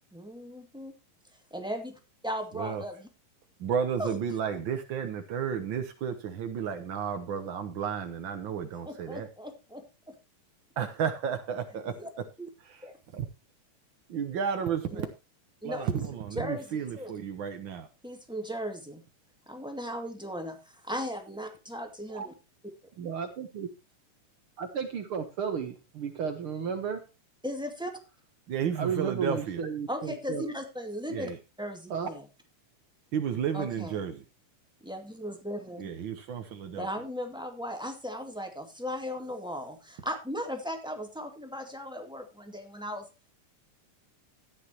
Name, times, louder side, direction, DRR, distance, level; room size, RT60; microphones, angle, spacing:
voice 1, 0.1-0.9 1.5-3.1 4.0-4.2 8.8-10.1 11.9-12.1 12.4-12.5 12.8-12.9 14.9-15.1 15.6-15.9 16.3-17.1 18.0-19.0 19.5-22.3 27.4-27.9 29.9-31.3 31.6-32.2 33.5-33.9 34.8-35.8 36.7-43.1, equal, ahead, 5 dB, 1.4 m, -37 dB
voice 2, 2.5-2.8 3.6-9.3 10.8-11.9 12.6-12.9 13.1-13.2 14.1-15.1 15.6-17.9 28.5-29.6 31.1-31.4 33.1-34.2 35.8-36.9, right 7 dB, 85° right, 7 dB, 1.0 m, -32 dB
voice 3, 23.0-23.7 24.6-27.0 28.8-30.4 31.9-32.1, right 6 dB, 60° right, 7 dB, 1.4 m, -33 dB
14.0 x 10.0 x 2.9 m, 0.27 s
omnidirectional pair, 3.7 m